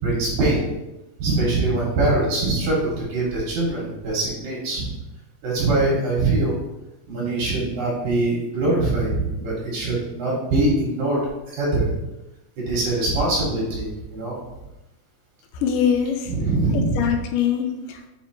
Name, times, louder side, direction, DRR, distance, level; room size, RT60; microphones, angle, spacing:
voice 1, 0.0-0.7 1.2-4.9 5.4-6.6 7.1-11.2 11.5-11.9 12.7-14.4 16.3-17.0, right 2 dB, 65° right, -5 dB, 3.8 m, -23 dB
voice 2, 15.5-16.3 16.7-18.1, left 8 dB, 85° left, 5 dB, 2.2 m, -23 dB
8.2 x 4.8 x 3.1 m, 0.99 s
omnidirectional pair, 3.8 m